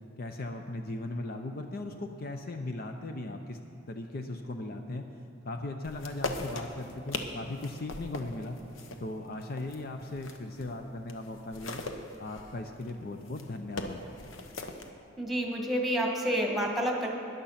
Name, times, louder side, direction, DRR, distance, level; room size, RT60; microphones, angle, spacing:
voice 1, 0.2-3.6 3.9-5.1 5.4-8.6 9.0-11.8 12.2-14.0, left 2 dB, 50° left, 5 dB, 0.7 m, -38 dB
sound 1, 5.8-10.8 11.1-14.9, left 2 dB, 75° left, 1.0 m, -40 dB
voice 2, 15.2-17.1, equal, ahead, 0 dB, 1.7 m, -29 dB
13.5 x 10.5 x 5.8 m, 3.0 s
head